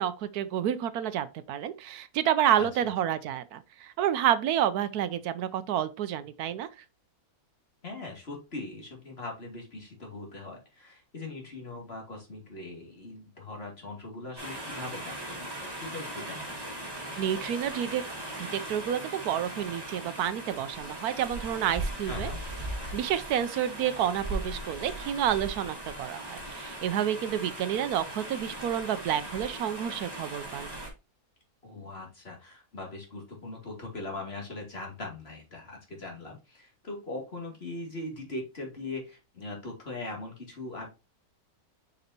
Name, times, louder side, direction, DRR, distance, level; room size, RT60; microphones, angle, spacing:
voice 1, 0.0-6.8 16.9-18.0 18.4-22.3 22.9-30.7, right 10 dB, 80° right, 1.1 m, -29 dB
voice 2, 7.8-15.4 15.7-16.8 22.1-22.4 31.6-40.9, left 2 dB, 40° left, 2.5 m, -40 dB
sound 1, 14.4-30.9, right 1 dB, 15° right, 2.0 m, -38 dB
6.7 x 5.5 x 2.8 m
omnidirectional pair, 1.6 m